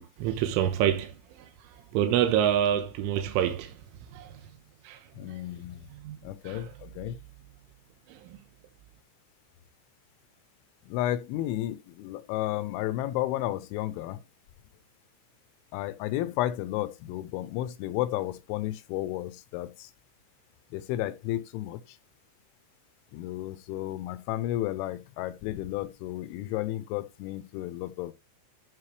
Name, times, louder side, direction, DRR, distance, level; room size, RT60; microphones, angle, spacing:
voice 1, 0.0-3.8 4.1-4.4 4.8-5.4 5.9-6.2 6.5-6.8 8.1-8.4, right 10 dB, 85° right, 3.5 m, -28 dB
voice 2, 5.2-5.9 6.2-7.2 10.9-14.2 15.7-19.9 20.7-21.8 23.1-28.1, left 14 dB, 80° left, 3.0 m, -32 dB
14.5 x 6.1 x 3.2 m
omnidirectional pair, 5.6 m